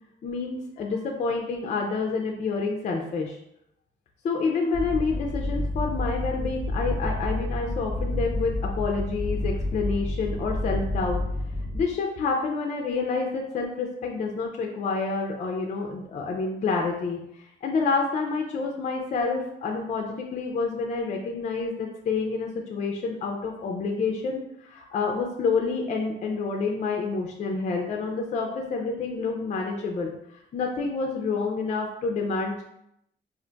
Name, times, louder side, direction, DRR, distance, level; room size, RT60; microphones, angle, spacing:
voice 1, 0.2-3.4 4.2-11.2 11.7-30.1 30.5-32.6, left 4 dB, 40° left, 1 dB, 0.4 m, -28 dB
sound 1, 4.7-11.8, left 1 dB, 40° right, 0.7 m, -29 dB
2.4 x 2.2 x 3.8 m, 0.78 s
wide cardioid pair, 165°, 19 cm